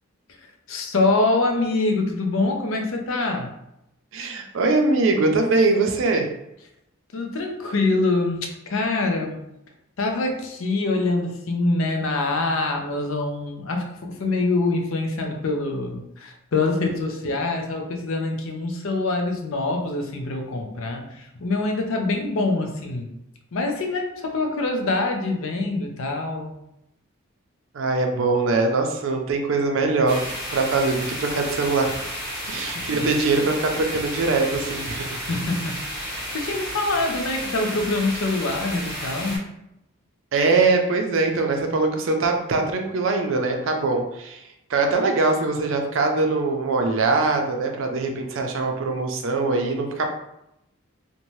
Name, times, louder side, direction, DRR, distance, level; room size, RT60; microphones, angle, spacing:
voice 1, 0.7-3.5 7.1-9.4 10.0-23.1 23.5-26.6 32.5-33.1 35.3-39.4, left 2 dB, 75° left, 3 dB, 0.5 m, -25 dB
voice 2, 4.1-6.3 27.7-32.0 32.5-35.1 40.3-44.4 44.7-50.1, right 3 dB, 70° right, 3 dB, 0.4 m, -22 dB
sound 1, 30.1-39.4, equal, 15° left, 1.2 m, -32 dB
2.6 x 2.1 x 3.0 m, 0.83 s
head